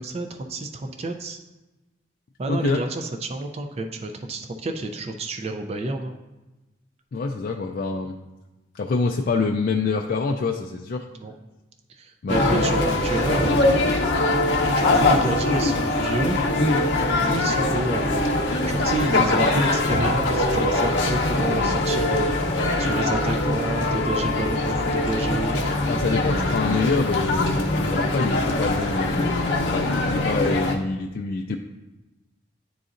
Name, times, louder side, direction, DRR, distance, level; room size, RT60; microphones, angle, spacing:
voice 1, 0.0-1.4 2.4-6.2 11.2-11.3 11.9-14.0 14.7-16.4 17.2-18.3 18.7-22.4 22.8-25.6, right 2 dB, 30° right, 5 dB, 0.3 m, -29 dB
voice 2, 2.5-2.8 7.1-8.2 8.7-11.1 12.2-12.9 25.9-29.5 29.7-31.6, left 4 dB, 50° left, 2 dB, 0.3 m, -26 dB
sound 1, 12.3-30.8, left 2 dB, 70° left, 0.7 m, -22 dB
9.8 x 3.9 x 2.5 m, 1.1 s
head